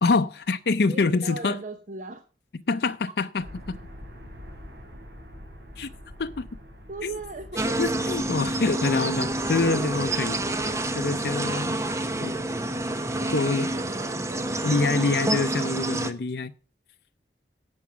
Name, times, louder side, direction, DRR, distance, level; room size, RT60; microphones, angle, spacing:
voice 1, 0.0-1.6 2.7-3.8 5.8-5.9 6.2-6.5 7.0-7.1 7.8-10.4 10.9-11.8 12.2-12.4 13.3-13.7 14.6-16.5, left 3 dB, 70° left, 0.5 m, -25 dB
voice 2, 0.9-2.2 6.9-7.8 12.2-14.5 14.8-15.0, right 2 dB, 45° right, 0.9 m, -39 dB
sound 1, 3.4-14.8, equal, 70° right, 4.9 m, -47 dB
sound 2, 7.6-16.1, right 1 dB, 15° right, 0.9 m, -28 dB
11.0 x 7.2 x 6.9 m
head